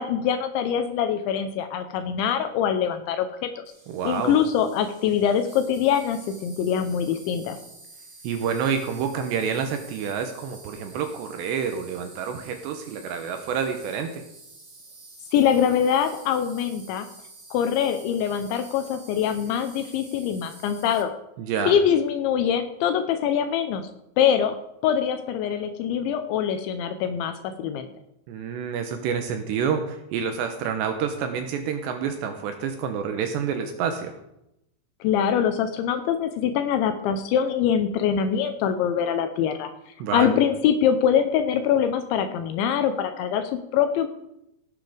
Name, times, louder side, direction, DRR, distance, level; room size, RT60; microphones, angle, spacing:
voice 1, 0.0-3.6 4.0-7.6 15.3-17.1 17.5-21.1 21.7-23.9 24.2-24.5 24.8-27.9 35.0-39.7 40.1-44.1, left 8 dB, 80° left, 8 dB, 2.8 m, -23 dB
Insect, 3.6-21.0, right 3 dB, 40° right, 1.3 m, -48 dB
voice 2, 3.9-4.4 8.2-14.2 21.4-21.8 28.3-34.1 40.0-40.4, right 7 dB, 75° right, 6 dB, 2.7 m, -28 dB
17.0 x 8.4 x 5.0 m, 0.84 s
omnidirectional pair, 5.8 m